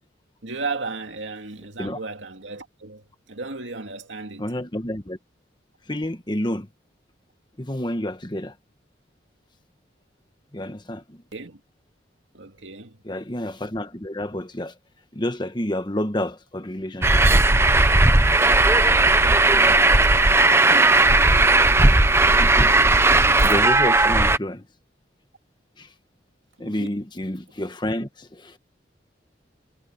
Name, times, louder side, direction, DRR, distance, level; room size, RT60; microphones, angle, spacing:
voice 1, 0.4-4.5 11.3-11.6 12.3-13.0 18.5-21.2 26.6-26.9, right 3 dB, 80° right, 2.4 m, -36 dB
voice 2, 4.4-5.2 5.9-6.7 7.6-8.5 10.5-11.2 13.0-14.7 15.1-17.2 21.7-22.0 22.3-22.7 23.0-23.1 23.4-24.7 25.8-25.9 26.6-28.6, left 1 dB, 25° left, 1.4 m, -29 dB
Truck, 17.0-24.4, right 2 dB, 15° right, 0.6 m, -16 dB
head